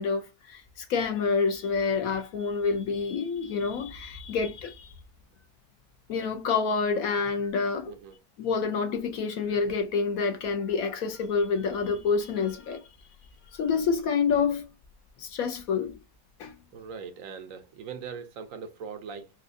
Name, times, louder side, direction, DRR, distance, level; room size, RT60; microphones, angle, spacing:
voice 1, 0.0-4.9 6.1-7.9 8.4-12.9 13.5-14.7 15.2-16.0 16.4-16.5, left 5 dB, 65° left, 0.9 m, -28 dB
voice 2, 7.9-8.2 16.7-19.3, right 6 dB, 70° right, 0.8 m, -40 dB
4.3 x 2.3 x 2.5 m
omnidirectional pair, 1.9 m